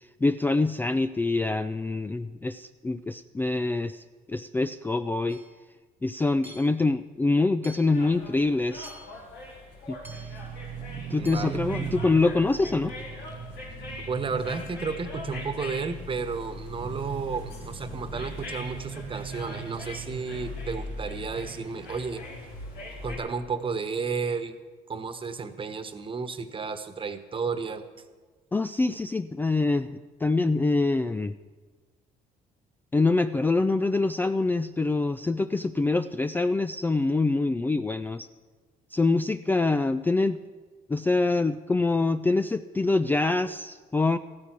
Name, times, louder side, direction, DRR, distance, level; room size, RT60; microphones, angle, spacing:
voice 1, 0.2-4.0 4.3-5.4 6.0-8.9 9.9-10.0 10.9-12.9 28.5-29.9 30.2-31.3 32.9-38.3 38.9-40.4 40.9-44.2, left 3 dB, 10° left, 12 dB, 0.3 m, -25 dB
Hammer / Chink clink, 5.3-5.6 6.4-6.9 7.6-8.1 8.8-9.3 10.0-10.5 11.2-11.6, right 1 dB, 10° right, 1.0 m, -49 dB
sound 1, 7.9-23.2, left 3 dB, 80° left, 5.1 m, -41 dB
sound 2, 10.0-21.9, right 10 dB, 50° right, 0.5 m, -40 dB
voice 2, 11.1-11.6 14.1-22.2 23.0-24.5 24.9-27.8, right 5 dB, 30° right, 10 dB, 1.3 m, -32 dB
15.0 x 13.0 x 6.1 m, 1.4 s
cardioid pair, 110°, 17 cm